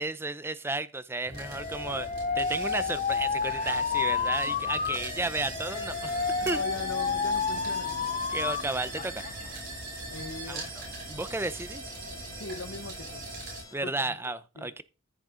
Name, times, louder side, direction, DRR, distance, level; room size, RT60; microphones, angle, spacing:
voice 1, 0.0-2.1 2.4-6.6 8.3-9.2 10.5-10.6 11.1-11.9 13.7-14.8, right 2 dB, 10° right, 0.5 m, -33 dB
sound 1, 1.2-13.6, right 2 dB, 45° right, 5.8 m, -40 dB
Alarm, 1.4-8.6 9.0-9.5, left 5 dB, 35° left, 0.7 m, -30 dB
sound 2, 5.6-13.8, left 3 dB, 15° left, 1.0 m, -50 dB
voice 2, 6.4-8.1 10.1-10.7 12.4-13.2 13.8-14.7, left 3 dB, 65° left, 1.1 m, -40 dB
14.5 x 6.5 x 3.8 m
head